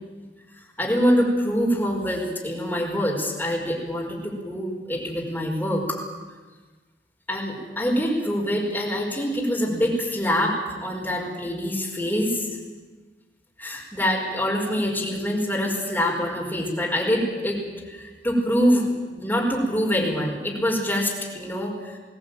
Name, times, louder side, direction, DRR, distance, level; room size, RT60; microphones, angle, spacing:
voice 1, 0.8-6.0 7.3-12.5 13.6-18.8 19.1-22.0, equal, 10° left, -2 dB, 5.0 m, -25 dB
22.5 x 17.0 x 9.1 m, 1.3 s
head